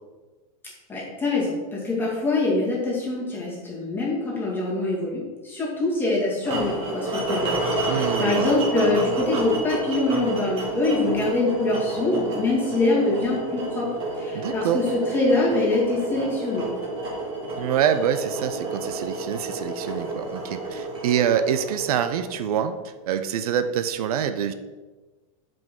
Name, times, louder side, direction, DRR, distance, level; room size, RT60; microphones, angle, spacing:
voice 1, 0.9-13.9 14.2-16.7, left 2 dB, 10° left, -5 dB, 2.1 m, -24 dB
sound 1, 6.4-22.6, right 2 dB, 30° right, 1.6 m, -30 dB
voice 2, 7.9-8.5 14.3-14.8 17.6-22.8 23.1-24.5, right 9 dB, 85° right, 10 dB, 0.6 m, -25 dB
7.5 x 5.2 x 3.7 m, 1.3 s
supercardioid pair, 155°, 18 cm